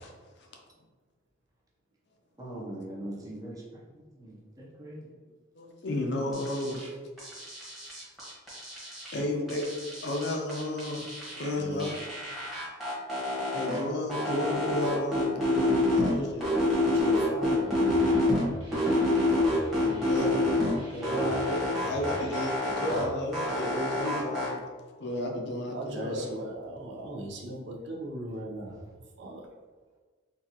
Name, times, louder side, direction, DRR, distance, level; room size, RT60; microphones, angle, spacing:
voice 1, 2.4-3.6 4.2-4.3 4.6-5.0 6.6-6.7 9.2-9.4 10.1-10.3 11.4-11.6 13.5-14.5 15.5-15.7 17.0-17.2 20.9-21.4 21.9-22.1 22.3-22.5 22.8-22.9 23.6-24.3 25.1-25.3, equal, 15° right, -4 dB, 0.6 m, -39 dB
voice 2, 5.6-6.8 9.1-9.7 10.0-11.9 13.5-16.4 19.8-20.4 20.9-24.6 25.0-26.3, left 1 dB, 55° left, 1 dB, 0.5 m, -33 dB
sound 1, 6.3-6.9 7.2-9.2 9.5-11.5 11.8-13.8 14.1-16.1 16.4-18.4 18.7-20.7 21.0-23.0 23.3-24.5, left 1 dB, ahead, 1.0 m, -28 dB
voice 3, 11.6-11.9 16.7-18.1 25.7-28.8 29.2-29.5, right 1 dB, 60° right, -1 dB, 0.6 m, -38 dB
sound 2, 17.9-23.1, equal, 85° right, 1.1 m, -45 dB
4.0 x 2.4 x 2.8 m, 1.4 s
head